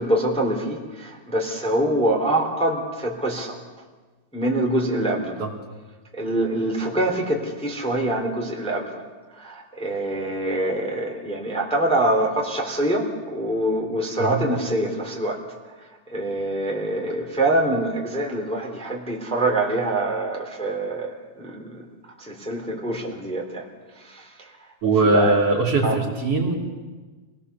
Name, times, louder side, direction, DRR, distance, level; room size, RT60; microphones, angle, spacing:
voice 1, 0.0-3.6 4.3-5.4 6.1-9.0 9.4-15.4 16.1-21.8 22.2-23.7 24.1-24.5 25.1-25.4 25.8-26.0, right 1 dB, ahead, -1 dB, 2.9 m, -25 dB
voice 2, 24.8-26.6, right 2 dB, 50° right, -2 dB, 3.6 m, -20 dB
27.0 x 19.0 x 6.9 m, 1.3 s
omnidirectional pair, 3.6 m